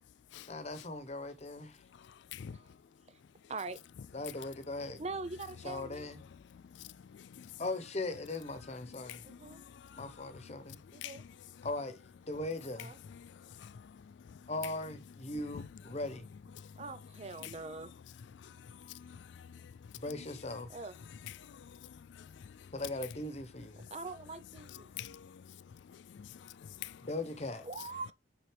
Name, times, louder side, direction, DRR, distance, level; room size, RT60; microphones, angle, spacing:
voice 1, 0.5-1.8 4.1-5.0 5.6-6.2 7.6-9.2 10.0-10.8 11.6-12.9 14.5-16.2 19.9-20.7 22.7-23.8 27.0-27.7, left 2 dB, 35° left, 1.1 m, -39 dB
voice 2, 2.0-2.6 6.5-7.5 9.0-10.1 10.7-11.2 13.2-14.5 15.5-15.6 16.6-16.8 18.4-19.9 21.4-22.7 24.9-27.1, left 9 dB, 75° left, 0.3 m, -49 dB
voice 3, 5.0-6.2 9.2-9.6 10.9-11.2 12.8-13.0 16.8-17.9 20.7-20.9 23.9-24.9 27.6-28.1, right 3 dB, 35° right, 0.7 m, -43 dB
7.8 x 4.1 x 3.4 m
head